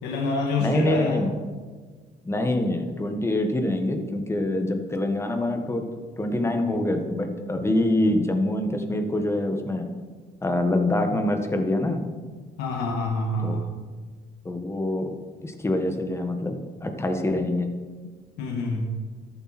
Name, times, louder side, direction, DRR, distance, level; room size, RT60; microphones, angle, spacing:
voice 1, 0.0-1.2 12.6-13.7 18.4-18.9, left 2 dB, 85° left, 0 dB, 1.9 m, -26 dB
voice 2, 0.6-1.3 2.2-5.8 6.2-9.9 10.4-12.0 13.4-13.6 14.4-15.1 15.4-17.7, left 1 dB, 15° left, 5 dB, 1.6 m, -25 dB
13.5 x 11.5 x 4.4 m, 1.5 s
cardioid pair, 110°, 17 cm